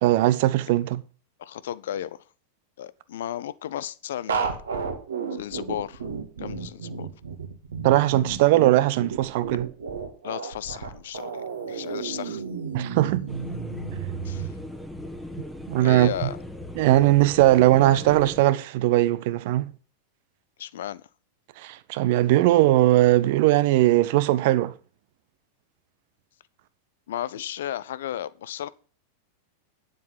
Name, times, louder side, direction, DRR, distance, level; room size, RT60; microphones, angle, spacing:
voice 1, 0.0-1.0 7.8-9.7 12.7-13.3 15.7-16.3 16.8-19.7 21.6-24.7, right 15 dB, 50° right, 0.7 m, -20 dB
voice 2, 1.4-2.2 2.8-4.6 5.3-6.0 6.4-7.1 10.2-12.4 14.2-14.5 15.8-16.4 20.6-21.0 27.1-28.7, left 11 dB, 60° left, 0.6 m, -34 dB
sound 1, 4.3-14.5, right 5 dB, 70° right, 1.9 m, -32 dB
sound 2, 13.3-18.4, left 1 dB, ahead, 1.3 m, -39 dB
9.4 x 7.6 x 5.8 m
figure-of-eight pair, 90°, 0 cm